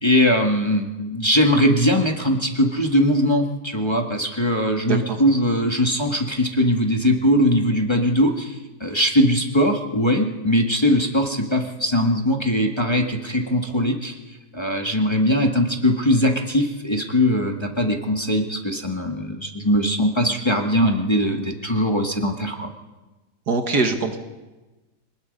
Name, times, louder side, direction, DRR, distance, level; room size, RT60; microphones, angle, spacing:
voice 1, 0.0-14.2 14.5-22.7, equal, 15° left, 2 dB, 1.8 m, -20 dB
voice 2, 4.7-5.2 23.5-24.2, right 3 dB, 70° right, 5 dB, 2.4 m, -23 dB
25.5 x 19.5 x 5.4 m, 1.1 s
omnidirectional pair, 1.8 m